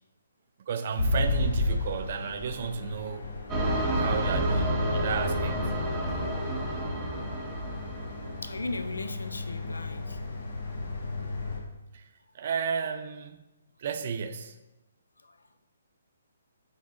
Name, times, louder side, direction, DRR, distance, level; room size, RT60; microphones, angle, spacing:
voice 1, 0.7-3.2 3.9-5.6 11.9-12.0 12.3-13.4 13.8-14.6, right 6 dB, 45° right, 0.3 m, -33 dB
sound 1, 1.0-11.6, left 3 dB, 55° left, 0.8 m, -33 dB
sound 2, 3.5-8.5, right 1 dB, 10° right, 0.8 m, -30 dB
voice 2, 8.4-10.2 15.2-15.4, left 2 dB, 70° left, 0.3 m, -37 dB
5.2 x 3.3 x 3.1 m
figure-of-eight pair, 130°, 0 cm